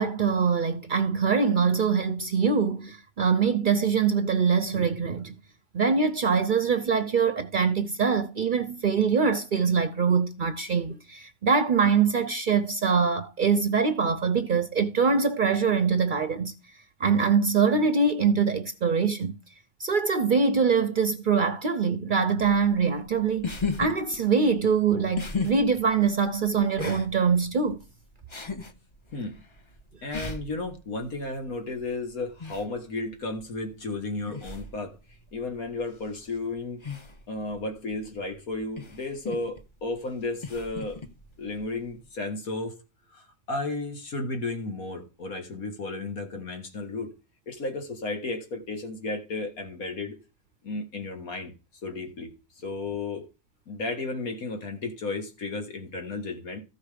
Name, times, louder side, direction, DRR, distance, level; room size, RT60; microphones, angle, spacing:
voice 1, 0.0-5.3 5.7-16.5 17.0-19.4 19.8-23.5 23.8-27.8, right 5 dB, 50° right, 0.6 m, -23 dB
sound 1, 22.4-42.1, left 4 dB, 30° left, 0.6 m, -39 dB
voice 2, 29.1-29.4 30.0-35.0 35.3-36.8 37.3-41.0 41.4-42.8 43.1-47.1 47.5-50.2 50.6-51.5 51.8-52.3 52.6-53.3 53.7-56.6, left 3 dB, 90° left, 2.3 m, -33 dB
14.5 x 5.1 x 5.0 m
omnidirectional pair, 1.4 m